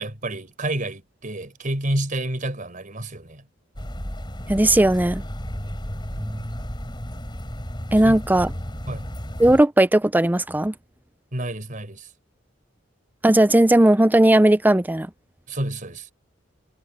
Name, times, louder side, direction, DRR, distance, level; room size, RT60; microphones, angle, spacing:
voice 1, 0.0-3.4 6.1-6.4 8.0-8.2 8.9-9.1 11.3-12.1 15.5-16.1, right 1 dB, 45° right, 4.6 m, -29 dB
sound 1, 3.8-9.6, equal, 25° left, 5.2 m, -33 dB
voice 2, 4.5-5.2 7.9-8.5 9.4-10.7 13.2-15.1, right 1 dB, 10° right, 0.5 m, -17 dB
head